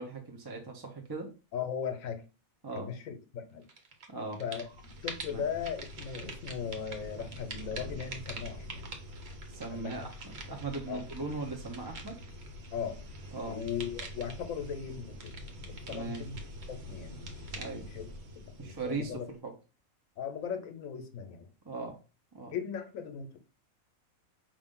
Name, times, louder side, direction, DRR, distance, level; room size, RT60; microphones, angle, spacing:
voice 1, 0.0-1.3 2.6-2.9 4.1-4.4 5.3-5.4 9.5-10.1 10.4-12.2 13.3-13.6 15.9-16.2 17.6-17.9 18.6-19.5 21.6-22.0 22.3-22.5, right 3 dB, 25° right, 0.5 m, -38 dB
voice 2, 1.5-2.2 2.7-3.7 4.4-8.8 9.7-10.0 10.9-11.0 12.7-13.0 13.5-16.4 16.7-18.1 18.3-19.2 20.2-21.5 22.5-23.4, left 7 dB, 75° left, 1.1 m, -38 dB
sound 1, 3.7-4.1 4.3-19.3, right 1 dB, 55° right, 1.0 m, -44 dB
5.1 x 2.5 x 3.6 m
omnidirectional pair, 1.5 m